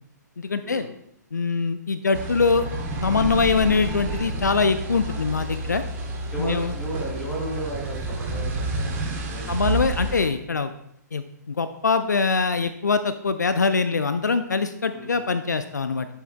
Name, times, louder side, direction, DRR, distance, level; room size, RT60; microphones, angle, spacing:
voice 1, 0.4-0.8 1.3-2.7 3.0-5.8 6.4-6.7 9.5-10.7 11.1-16.1, left 4 dB, 70° left, 11 dB, 0.4 m, -23 dB
sound 1, 2.1-10.3, right 2 dB, 20° right, 1.2 m, -30 dB
voice 2, 6.3-8.9 9.3-9.9 14.9-15.2, right 2 dB, 5° left, -5 dB, 2.9 m, -34 dB
11.0 x 7.2 x 2.2 m, 0.74 s
figure-of-eight pair, 120°, 10 cm